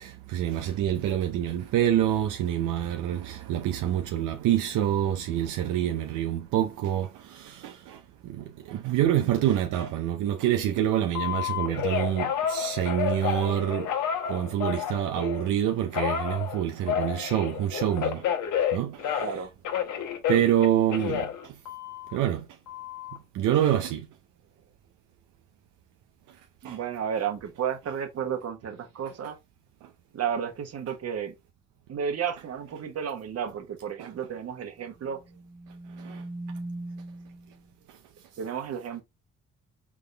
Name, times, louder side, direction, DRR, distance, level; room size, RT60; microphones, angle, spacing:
voice 1, 0.0-8.0 8.2-13.9 14.3-18.2 18.7-19.0 20.3-21.3 22.1-22.4 23.3-24.1 26.6-26.8 34.0-34.1 36.0-36.2, right 11 dB, 85° right, 0.6 m, -26 dB
Telephone, 11.1-15.5 15.9-19.4 19.6-22.2 22.7-23.2, left 9 dB, 85° left, 1.1 m, -30 dB
voice 2, 26.6-29.4 30.1-31.3 31.9-35.2 38.4-39.0, right 8 dB, 55° right, 1.2 m, -32 dB
sound 1, 35.1-37.6, right 2 dB, 10° right, 0.7 m, -40 dB
3.8 x 3.6 x 3.3 m
cardioid pair, 90°, 30 cm